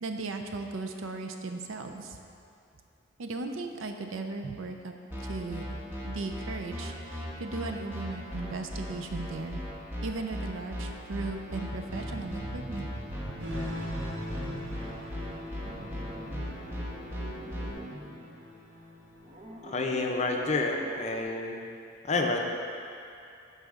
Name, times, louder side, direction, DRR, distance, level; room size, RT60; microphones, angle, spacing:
voice 1, 0.0-2.2 3.2-4.9 5.2-5.8 6.0-9.6 10.0-12.9, right 3 dB, 80° right, 5 dB, 0.5 m, -37 dB
sound 1, 5.1-17.7, equal, 10° right, 1.0 m, -36 dB
sound 2, 11.9-15.0 15.3-18.4 19.2-21.2, right 1 dB, 25° right, 0.5 m, -44 dB
sound 3, 13.4-20.2, left 1 dB, 55° right, 1.5 m, -42 dB
voice 2, 19.6-21.6 22.0-22.4, left 3 dB, 35° left, 2 dB, 0.5 m, -29 dB
10.5 x 4.1 x 3.6 m, 2.5 s
head